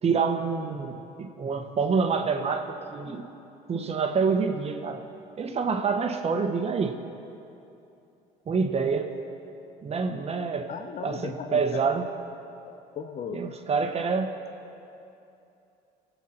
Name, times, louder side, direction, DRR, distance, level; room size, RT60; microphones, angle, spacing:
voice 1, 0.0-3.2 3.7-5.0 5.4-7.0 8.5-9.1 9.8-10.7 11.0-12.0 13.3-14.3, right 5 dB, 40° right, 5 dB, 1.2 m, -27 dB
voice 2, 10.7-11.9 12.7-13.5, left 7 dB, 45° left, 7 dB, 0.7 m, -37 dB
24.0 x 8.3 x 4.5 m, 2.7 s
cardioid pair, 110°, 17 cm